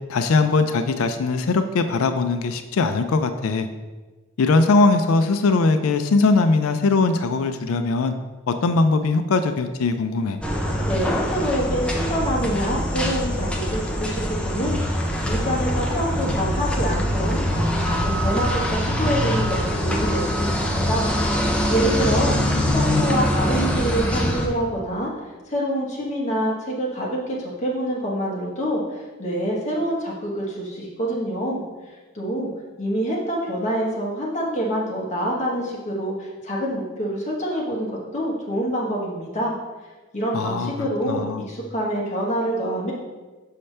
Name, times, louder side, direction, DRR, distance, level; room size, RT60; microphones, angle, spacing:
voice 1, 0.1-3.7 4.4-8.1 8.5-10.4 22.1-23.1 40.3-41.4, left 3 dB, 80° left, 9 dB, 0.4 m, -21 dB
sound 1, 10.4-24.5, equal, 5° left, 0.6 m, -23 dB
voice 2, 10.9-21.1 21.7-22.3 22.7-25.1 25.5-31.6 32.1-32.5 32.8-39.5 40.1-42.9, equal, 35° left, -4 dB, 1.2 m, -26 dB
6.4 x 5.6 x 3.3 m, 1.3 s
head